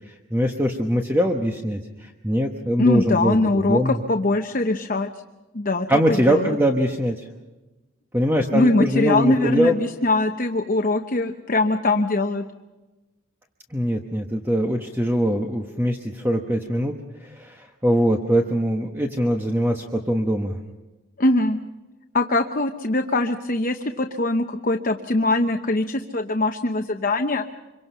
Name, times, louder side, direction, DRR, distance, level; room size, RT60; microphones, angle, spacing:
voice 1, 0.3-4.0 5.9-7.3 8.1-9.8 13.7-16.9 17.2-20.6, equal, 10° right, 2 dB, 1.1 m, -22 dB
voice 2, 2.8-5.1 5.5-6.6 8.5-12.4 21.2-21.6 22.1-27.4, left 2 dB, 40° left, 5 dB, 0.9 m, -22 dB
27.0 x 23.5 x 5.6 m, 1.1 s
head